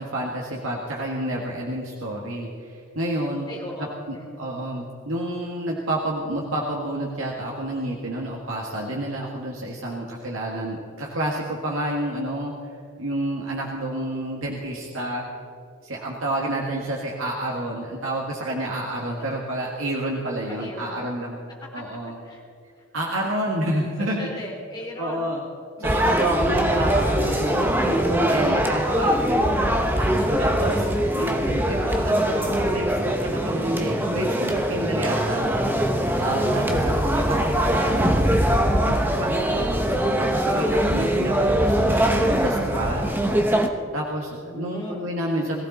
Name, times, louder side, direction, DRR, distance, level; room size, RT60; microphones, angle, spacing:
voice 1, 0.0-3.5 3.8-12.5 13.0-15.3 15.8-21.4 21.7-22.2 22.9-24.3 25.0-25.4 25.8-29.7 30.4-30.9 31.1-35.9 36.2-43.2 43.9-45.7, right 1 dB, 70° right, -2 dB, 1.8 m, -29 dB
voice 2, 3.5-4.4 18.6-18.7 20.4-21.1 21.6-21.8 22.2-22.4 22.8-22.9 23.7-25.3 27.8-27.9 29.9-30.5 44.3-45.0, left 1 dB, 20° left, -2 dB, 3.1 m, -38 dB
sound 1, 25.8-43.7, equal, 10° right, 0.9 m, -22 dB
21.5 x 15.5 x 4.2 m, 2.3 s
head